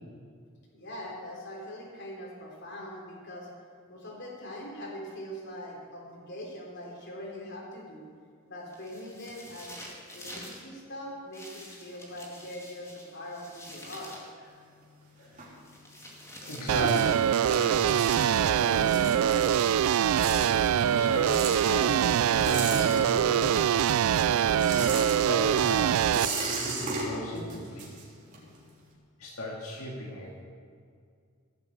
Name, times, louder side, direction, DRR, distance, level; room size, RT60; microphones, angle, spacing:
voice 1, 0.7-3.5 3.9-8.1 8.5-9.7 10.1-14.2, equal, 55° left, -2 dB, 3.8 m, -42 dB
sound 1, 8.7-10.6 11.3-14.3 15.6-17.4 18.0-19.1 20.6-23.4, left 1 dB, 15° left, 2.4 m, -48 dB
sound 2, 14.4-16.1 16.4-23.6 23.9-28.6, right 2 dB, 35° right, 3.3 m, -36 dB
voice 2, 16.4-19.6 20.4-24.9 25.3-27.9 29.2-30.3, left 1 dB, 90° left, -2 dB, 2.2 m, -38 dB
sound 3, 16.7-26.3, right 9 dB, 85° right, 0.3 m, -24 dB
16.5 x 8.5 x 8.2 m, 2.2 s
head